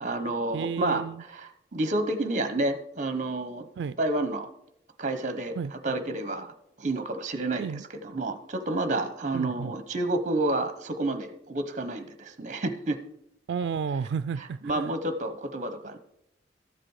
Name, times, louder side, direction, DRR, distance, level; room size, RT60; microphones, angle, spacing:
voice 1, 0.0-3.7 4.0-4.5 5.0-6.5 6.8-13.0 14.6-16.0, right 2 dB, 45° right, 11 dB, 0.9 m, -30 dB
voice 2, 0.5-1.2 3.8-4.0 5.6-5.7 7.6-7.8 9.3-9.7 13.5-14.9, right 6 dB, 85° right, 14 dB, 0.3 m, -32 dB
13.0 x 7.5 x 4.8 m, 0.80 s
head